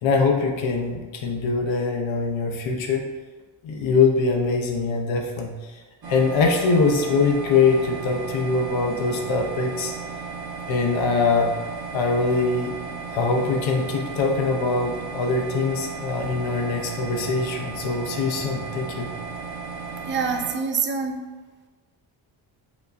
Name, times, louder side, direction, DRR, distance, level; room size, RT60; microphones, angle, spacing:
voice 1, 0.0-3.1 3.6-5.5 6.1-9.9 10.7-11.5 11.9-12.7 13.1-19.1, left 4 dB, 70° left, 1 dB, 0.7 m, -23 dB
sound 1, 6.0-20.6, right 5 dB, 50° right, 0.8 m, -35 dB
voice 2, 20.1-21.2, right 5 dB, 25° right, 4 dB, 0.3 m, -25 dB
5.0 x 2.2 x 2.5 m, 1.4 s
cardioid pair, 75°, 48 cm